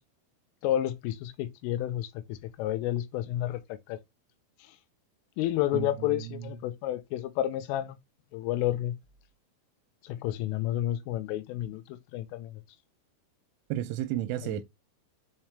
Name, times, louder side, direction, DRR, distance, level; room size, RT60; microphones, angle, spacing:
voice 1, 0.6-4.0 5.4-8.0 8.3-9.0 10.0-12.6 14.4-14.6, left 13 dB, 85° left, 3.3 m, -31 dB
voice 2, 5.7-6.5 13.7-14.6, right 13 dB, 85° right, 3.0 m, -33 dB
7.4 x 4.4 x 3.2 m
omnidirectional pair, 5.8 m